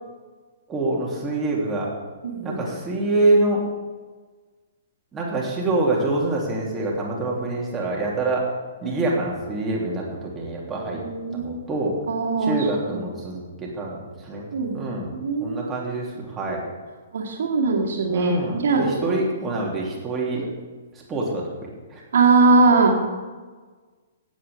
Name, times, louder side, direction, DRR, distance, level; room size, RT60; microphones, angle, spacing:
voice 1, 0.7-1.9 2.4-3.6 5.1-8.5 8.8-11.0 11.3-12.0 12.4-14.5 14.7-15.1 15.4-16.6 18.1-20.4 21.1-22.0, right 2 dB, 15° right, -3 dB, 2.9 m, -25 dB
voice 2, 2.2-2.6 8.8-9.1 10.8-11.7 12.1-13.1 14.5-14.8 15.1-15.9 17.1-19.1 20.3-20.5 22.1-23.0, right 3 dB, 55° right, 1 dB, 2.3 m, -21 dB
17.5 x 7.9 x 3.6 m, 1.4 s
figure-of-eight pair, 115°, 0 cm